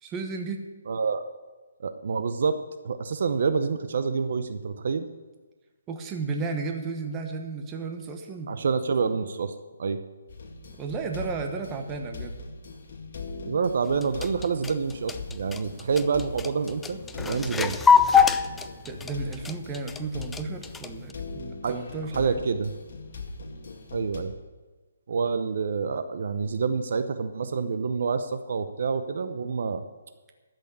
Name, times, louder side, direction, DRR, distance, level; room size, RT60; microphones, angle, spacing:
voice 1, 0.0-0.6 5.9-8.5 10.8-12.4 18.8-22.4, right 4 dB, 15° right, 4 dB, 1.1 m, -33 dB
voice 2, 0.9-1.2 1.8-2.6 2.8-5.1 8.5-10.0 13.5-17.8 21.6-21.8 22.1-22.7 23.9-24.3 25.1-29.8, right 5 dB, 55° right, 10 dB, 0.7 m, -27 dB
sound 1, 10.3-24.2, left 3 dB, 50° left, 1.9 m, -40 dB
sound 2, 13.9-21.1, left 6 dB, 5° left, 0.3 m, -24 dB
13.0 x 6.3 x 8.7 m, 1.3 s
hypercardioid pair, 165°, 0 cm